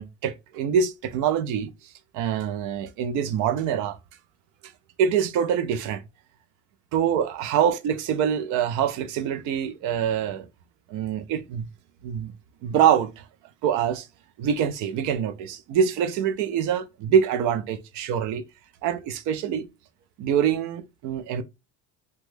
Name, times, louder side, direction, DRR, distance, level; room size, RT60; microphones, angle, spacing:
voice 1, 0.0-4.0 5.0-6.0 6.9-10.5 10.9-11.7 12.0-12.3 12.6-13.2 13.6-14.1 14.4-18.4 18.8-19.7 20.2-21.4, right 8 dB, 65° right, 0.6 m, -25 dB
2.9 x 2.2 x 3.2 m
cardioid pair, 125°, 32 cm